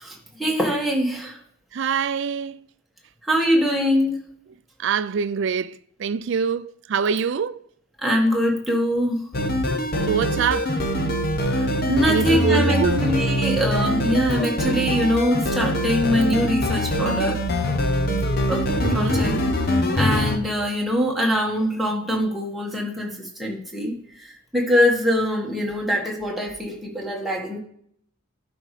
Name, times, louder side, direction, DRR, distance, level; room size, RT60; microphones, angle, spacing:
voice 1, 0.0-1.4 3.2-4.2 8.0-9.3 11.4-17.4 18.5-19.3 19.9-27.6, equal, ahead, 1.6 m, -23 dB
voice 2, 1.7-2.7 4.8-7.6 10.1-10.7 12.0-13.1 18.8-19.3, right 6 dB, 60° right, 0.4 m, -24 dB
sound 1, 9.3-20.4, left 1 dB, 50° left, 0.9 m, -23 dB
12.0 x 5.2 x 3.2 m
head